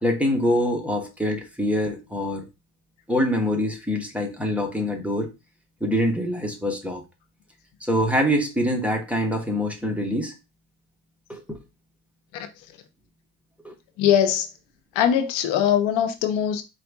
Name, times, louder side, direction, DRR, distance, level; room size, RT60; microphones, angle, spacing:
voice 1, 0.0-2.5 3.1-5.3 5.8-7.0 7.9-10.3 11.3-11.6 13.6-13.7, equal, 5° right, 1.0 m, -24 dB
voice 2, 14.0-14.5 14.9-16.6, left 9 dB, 80° left, 0.9 m, -21 dB
4.7 x 2.5 x 3.5 m
cardioid pair, 100°, 45 cm